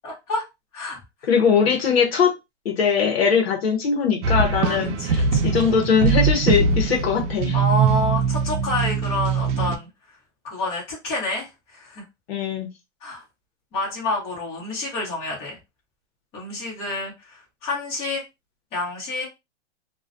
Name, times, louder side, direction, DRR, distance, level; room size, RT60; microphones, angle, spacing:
voice 1, 0.0-0.4 0.7-1.0 4.6-5.6 7.5-9.9 10.4-12.0 13.0-13.2 13.7-15.6 16.3-18.2 18.7-19.2, left 2 dB, 15° left, -4 dB, 0.8 m, -28 dB
voice 2, 1.3-2.3 2.6-7.5 12.3-12.7, left 6 dB, 60° left, 2 dB, 0.8 m, -21 dB
sound 1, 4.2-9.8, right 5 dB, 85° right, 0.6 m, -22 dB
2.3 x 2.1 x 2.5 m, 0.23 s
hypercardioid pair, 165°, 35 cm